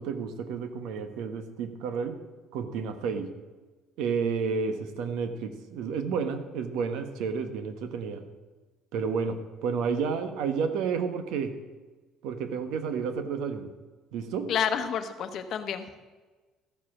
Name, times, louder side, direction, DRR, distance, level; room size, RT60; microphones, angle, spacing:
voice 1, 0.0-2.2 2.5-3.3 4.0-8.2 8.9-11.6 12.2-13.7 14.1-14.5, right 6 dB, 75° right, 8 dB, 1.3 m, -31 dB
voice 2, 14.5-16.0, left 8 dB, 45° left, 8 dB, 0.9 m, -30 dB
13.5 x 7.4 x 6.3 m, 1.3 s
cardioid pair, 165°, 0 cm